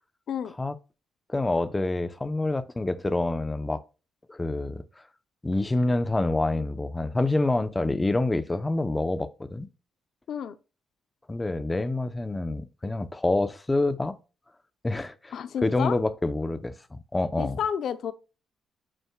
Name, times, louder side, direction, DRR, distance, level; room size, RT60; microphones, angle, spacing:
voice 1, 1.3-3.8 4.3-5.0 5.4-9.7 11.3-14.1 14.8-15.3 15.6-17.6, left 2 dB, 15° left, 0.9 m, -27 dB
voice 2, 15.3-16.0 17.4-18.1, left 8 dB, 65° left, 0.8 m, -30 dB
9.3 x 6.3 x 2.4 m
cardioid pair, 90°, 0 cm